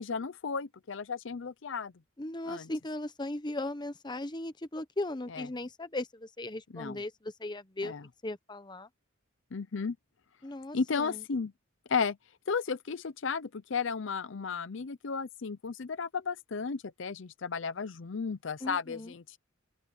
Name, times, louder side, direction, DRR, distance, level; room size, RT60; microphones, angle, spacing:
voice 1, 0.0-1.9 2.5-2.7 5.3-5.4 6.7-7.0 7.8-8.0 9.5-10.0 10.7-11.5 11.9-12.2 12.5-19.4, left 5 dB, 65° left, 0.6 m, -34 dB
voice 2, 2.2-7.9 8.2-8.9 10.4-11.2 18.6-19.1, left 2 dB, 20° left, 0.9 m, -37 dB
head